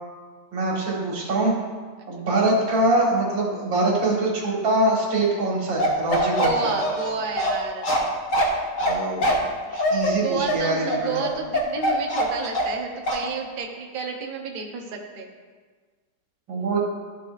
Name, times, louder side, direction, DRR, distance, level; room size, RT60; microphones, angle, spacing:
voice 1, 0.5-1.5 2.1-6.7 8.8-9.4 9.7-11.2 16.5-16.8, right 2 dB, 90° right, -2 dB, 2.3 m, -23 dB
Bark, 5.8-12.8 13.1-13.3, equal, 50° left, 1.3 m, -23 dB
voice 2, 6.4-7.9 10.2-15.3, right 4 dB, 40° right, 1 dB, 0.7 m, -30 dB
12.5 x 6.5 x 2.5 m, 1.5 s
omnidirectional pair, 2.0 m